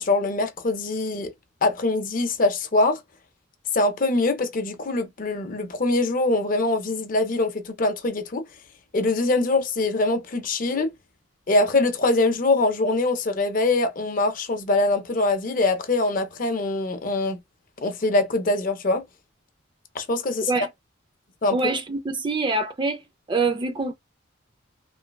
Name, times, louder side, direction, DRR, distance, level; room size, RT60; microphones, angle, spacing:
voice 1, 0.0-1.3 1.6-3.0 3.7-8.4 8.9-10.9 11.5-17.4 17.8-19.0 20.0-20.5 21.4-21.6, left 2 dB, 40° left, 0.5 m, -23 dB
voice 2, 21.5-23.0 23.3-23.9, right 3 dB, 25° right, 0.3 m, -25 dB
3.1 x 2.2 x 2.2 m
head